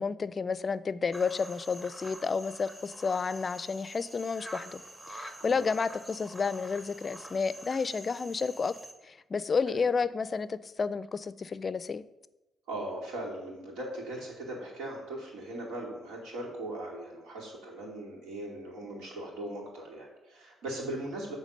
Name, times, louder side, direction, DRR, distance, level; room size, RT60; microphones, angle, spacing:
voice 1, 0.0-4.8 5.1-8.7 9.0-12.0, left 5 dB, 40° left, 16 dB, 0.4 m, -31 dB
sound 1, 1.1-8.9, right 1 dB, 15° right, 1.1 m, -47 dB
voice 2, 12.7-21.4, right 1 dB, 90° right, -2 dB, 2.4 m, -39 dB
9.1 x 3.5 x 6.6 m, 1.0 s
cardioid pair, 90°, 0 cm